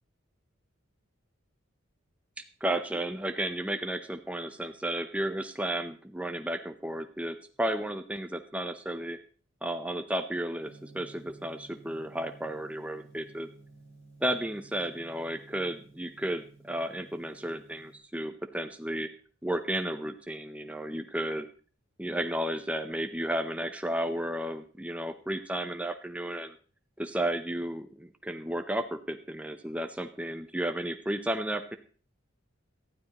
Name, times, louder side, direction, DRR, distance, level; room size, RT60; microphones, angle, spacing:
voice 1, 2.6-9.2 9.6-13.5 14.2-19.1 19.4-21.5 22.0-26.6 27.0-31.8, right 1 dB, 5° right, 7 dB, 0.7 m, -33 dB
Gong, 10.6-18.0, right 2 dB, 35° left, 6.8 m, -54 dB
18.5 x 12.5 x 3.0 m, 0.38 s
head